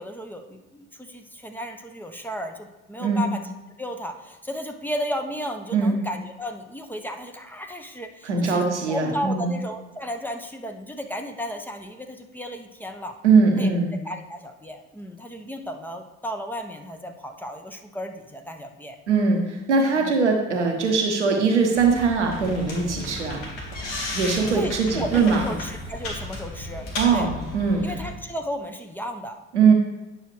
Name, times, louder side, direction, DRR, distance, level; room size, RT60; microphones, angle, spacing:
voice 1, 0.0-3.4 3.8-13.2 13.6-13.7 14.0-19.0 20.0-20.2 23.1-23.2 24.5-26.8 27.1-27.3 27.8-29.4, equal, 5° left, 4 dB, 0.8 m, -34 dB
voice 2, 8.2-9.5 13.2-13.9 19.1-23.4 24.1-25.5 27.0-27.8 29.5-29.7, right 4 dB, 90° right, 2 dB, 0.9 m, -21 dB
sound 1, 21.7-28.1, left 1 dB, 65° left, 1.7 m, -34 dB
9.1 x 6.3 x 3.1 m, 1.1 s
figure-of-eight pair, 45°, 34 cm